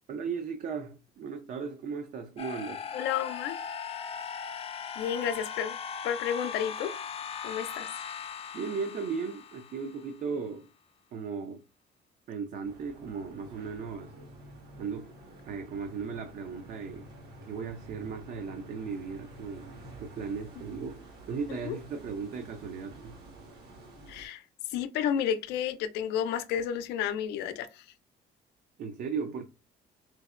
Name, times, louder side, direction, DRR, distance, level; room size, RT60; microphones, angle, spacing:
voice 1, 0.1-2.9 8.5-10.7 11.1-11.6 12.3-14.1 14.8-15.1 15.5-17.1 17.4-19.7 20.0-23.2 28.8-29.4, right 5 dB, 55° right, 0.5 m, -36 dB
sound 1, 2.4-10.3, left 7 dB, 35° left, 0.4 m, -39 dB
voice 2, 2.9-3.6 5.0-5.8 6.0-6.9 7.4-7.9 21.6-21.8 24.1-24.4 24.7-27.8, left 9 dB, 90° left, 0.5 m, -31 dB
sound 2, 12.6-24.3, right 1 dB, 75° right, 1.5 m, -49 dB
4.5 x 2.1 x 2.4 m
cardioid pair, 110°, 17 cm